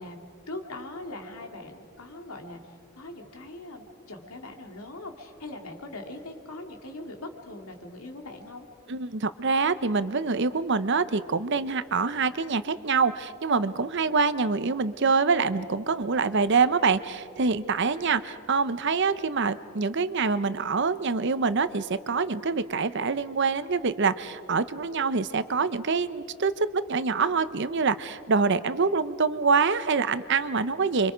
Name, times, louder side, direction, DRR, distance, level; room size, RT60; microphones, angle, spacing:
voice 1, 0.0-8.7, left 2 dB, 80° left, 4 dB, 2.7 m, -41 dB
voice 2, 8.9-31.1, right 4 dB, 55° right, 14 dB, 0.7 m, -25 dB
29.5 x 24.5 x 5.1 m, 2.4 s
head